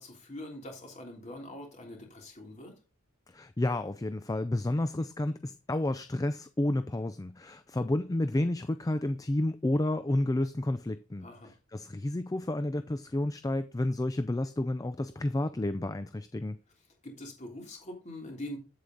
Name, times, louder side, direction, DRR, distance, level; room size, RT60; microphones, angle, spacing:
voice 1, 0.0-2.7 11.2-11.5 17.0-18.6, left 1 dB, 35° left, 3.3 m, -43 dB
voice 2, 3.3-11.3 11.7-16.6, left 1 dB, 15° left, 0.4 m, -30 dB
8.5 x 8.0 x 3.9 m
head